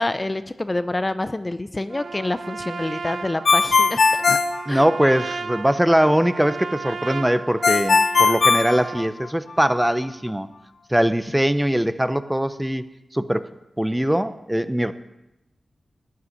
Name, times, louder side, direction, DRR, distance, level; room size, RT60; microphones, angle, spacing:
voice 1, 0.0-4.2 4.7-4.9, left 2 dB, 30° left, 11 dB, 0.6 m, -27 dB
Trumpet, 1.9-9.1, right 4 dB, 70° right, 0.8 m, -34 dB
Ringtone, 3.4-5.4 7.6-9.5, left 4 dB, 75° left, 0.6 m, -19 dB
voice 2, 4.7-10.5 10.9-12.8 13.1-13.5 13.8-14.9, equal, 10° right, 12 dB, 0.8 m, -21 dB
12.5 x 6.4 x 9.7 m, 0.91 s
cardioid pair, 50°, 0 cm